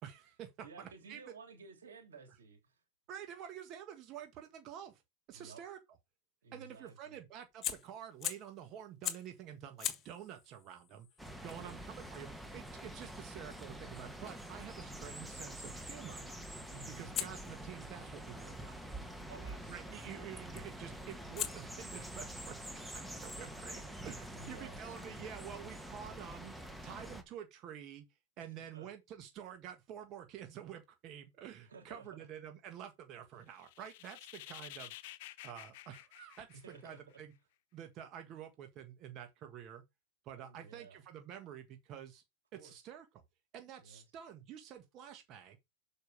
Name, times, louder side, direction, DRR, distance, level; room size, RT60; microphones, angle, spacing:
voice 1, 0.0-1.2 3.1-5.0 5.3-5.8 6.5-11.1 11.4-16.3 17.0-18.8 19.7-22.6 22.9-26.5 26.8-28.0 28.4-34.9 35.4-37.3 37.7-39.8 40.2-42.2 42.5-43.0 43.5-45.6, right 9 dB, 40° right, 1.6 m, -49 dB
voice 2, 0.6-2.8 5.3-5.6 6.4-7.2 11.5-11.8 16.7-17.1 19.3-20.0 24.3-24.8 28.4-28.9 31.7-32.3 36.5-37.2 40.4-41.0 42.5-42.7 43.8-44.0, right 4 dB, 85° right, 2.8 m, -54 dB
Fire, 7.5-8.6 9.0-9.4 9.8-14.7 17.1-19.2 20.6-20.9 21.4-24.8, left 10 dB, 35° left, 1.5 m, -45 dB
sound 1, 11.2-27.2, right 1 dB, 5° right, 1.3 m, -46 dB
sound 2, 33.5-37.1, left 15 dB, 60° left, 0.8 m, -51 dB
6.9 x 5.1 x 4.9 m
hypercardioid pair, 110°, 0 cm